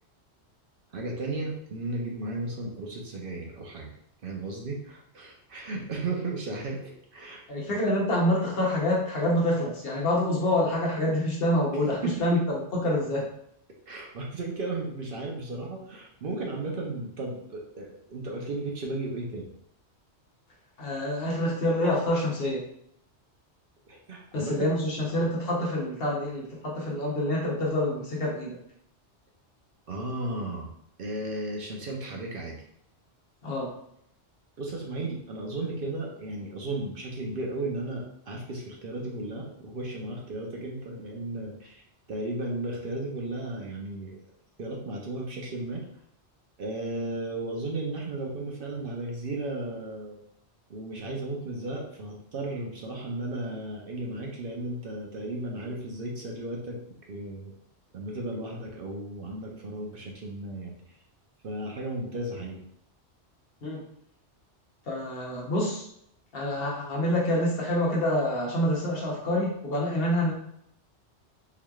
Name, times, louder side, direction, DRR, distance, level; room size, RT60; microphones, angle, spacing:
voice 1, 0.9-3.9 4.2-7.4 12.0-12.1 13.9-19.5 23.9-24.7 29.9-30.7 31.0-32.6 34.6-41.8 42.1-44.2 44.6-45.8 46.6-50.2 50.7-56.8 57.1-57.5 57.9-60.7 61.4-62.6, right 2 dB, 55° right, -1 dB, 0.8 m, -34 dB
voice 2, 7.5-13.3 20.8-22.6 24.3-28.6 33.4-33.7 63.6-63.8 64.9-65.9 66.3-70.3, left 1 dB, 60° left, -3 dB, 1.1 m, -27 dB
3.8 x 3.1 x 2.3 m, 0.70 s
omnidirectional pair, 1.2 m